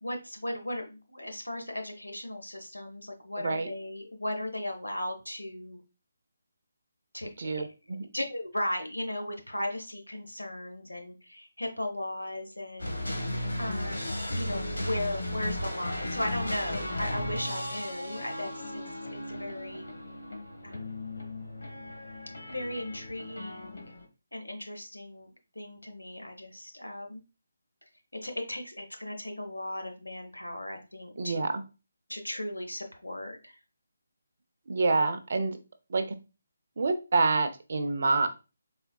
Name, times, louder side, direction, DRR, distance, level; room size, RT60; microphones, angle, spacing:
voice 1, 0.0-5.8 7.1-7.3 7.6-13.1 13.6-18.8 19.1-19.9 20.6-21.0 22.5-23.8 24.3-25.3 25.5-27.2 28.1-31.5 32.1-33.6, left 1 dB, 90° left, 3 dB, 0.8 m, -37 dB
voice 2, 7.4-8.1 31.2-31.6 34.7-35.6 35.9-36.0 36.8-38.3, right 3 dB, 55° right, 9 dB, 0.6 m, -27 dB
sound 1, 12.8-24.0, left 1 dB, 70° left, 1.3 m, -35 dB
4.3 x 3.4 x 2.2 m, 0.29 s
figure-of-eight pair, 150°, 0 cm